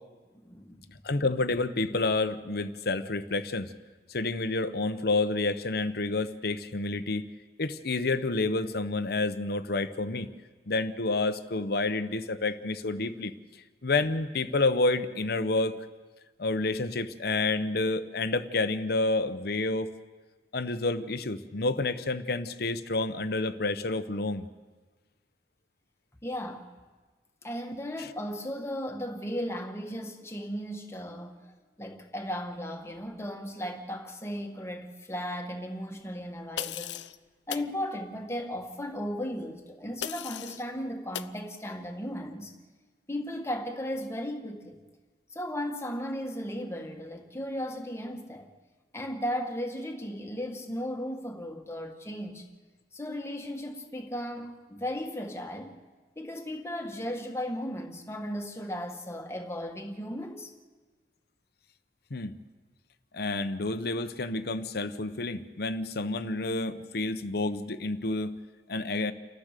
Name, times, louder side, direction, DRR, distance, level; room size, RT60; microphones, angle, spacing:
voice 1, 0.4-0.9 26.2-26.7 27.4-37.0 37.5-42.5 43.1-44.8 45.3-48.5 48.9-52.5 52.9-55.8 56.2-60.5, equal, 15° left, 1.7 m, -36 dB
voice 2, 1.0-3.7 4.1-7.3 7.6-10.3 10.7-13.3 13.8-15.7 16.4-19.9 20.5-24.5 62.1-62.4 63.1-68.4 68.7-69.1, left 3 dB, 60° left, 1.0 m, -29 dB
sound 1, 36.6-37.2 37.5-37.7 40.0-40.6 41.1-41.3, left 10 dB, 90° left, 0.6 m, -36 dB
29.0 x 13.5 x 6.7 m
head